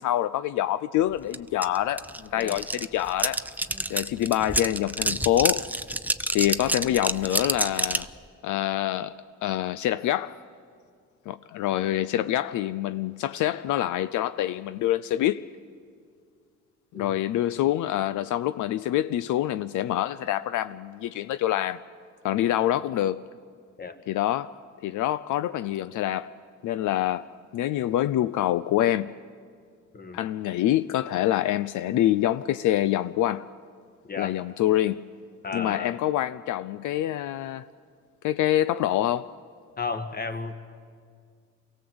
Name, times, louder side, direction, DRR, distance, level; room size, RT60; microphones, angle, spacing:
voice 1, 0.0-3.4 3.9-5.7 6.3-8.1 8.4-9.2 9.4-10.4 11.3-15.4 17.0-21.8 22.2-23.2 24.1-24.5 24.8-26.3 26.6-27.3 27.5-29.1 30.1-33.4 34.2-35.1 35.5-37.7 38.2-39.3, left 13 dB, 80° left, 0.5 m, -26 dB
sound 1, 1.3-1.4 1.6-8.1, right 1 dB, 5° right, 0.6 m, -28 dB
voice 2, 35.4-36.0 39.8-40.5, left 4 dB, 30° left, 1.8 m, -33 dB
24.0 x 17.0 x 7.9 m
cardioid pair, 90°, 30 cm